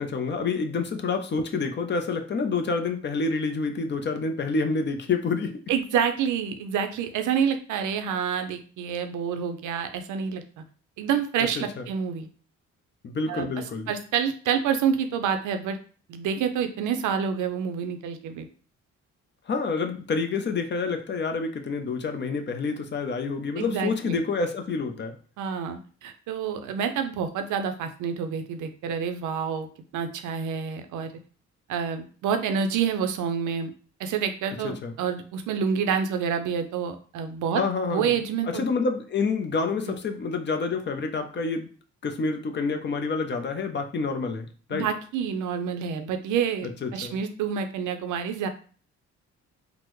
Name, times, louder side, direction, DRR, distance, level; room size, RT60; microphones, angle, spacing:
voice 1, 0.0-5.6 11.6-11.7 13.0-13.9 19.5-25.2 34.6-34.9 37.5-38.1 38.5-41.7 42.0-44.9 46.8-47.2, left 4 dB, 35° left, 6 dB, 0.5 m, -28 dB
voice 2, 5.7-10.6 11.0-12.3 13.3-15.8 16.1-18.5 23.6-24.2 25.4-29.7 29.9-31.1 31.7-33.7 34.0-37.6 37.9-38.7 39.9-40.0 44.7-48.5, right 7 dB, 80° right, 8 dB, 0.5 m, -28 dB
3.5 x 2.0 x 3.0 m, 0.40 s
cardioid pair, 90°, 30 cm